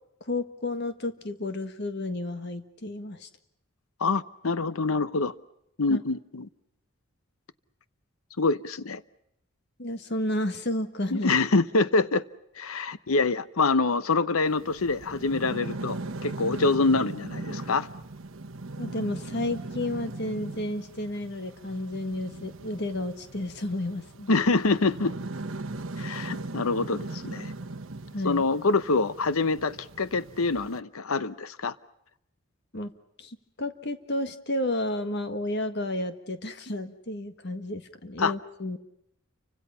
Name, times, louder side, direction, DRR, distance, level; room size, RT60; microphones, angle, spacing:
voice 1, 0.2-3.3 5.9-6.0 9.8-11.4 18.8-24.3 28.1-28.4 32.7-32.9 33.2-38.8, left 1 dB, 50° left, 1.7 m, -32 dB
voice 2, 4.0-5.3 5.8-6.5 8.4-9.0 11.1-12.2 12.6-17.9 24.3-25.1 26.0-27.5 28.2-31.7 38.2-38.3, left 3 dB, 85° left, 0.9 m, -25 dB
sound 1, 14.5-30.8, right 2 dB, 65° right, 1.1 m, -39 dB
29.5 x 25.5 x 5.7 m
head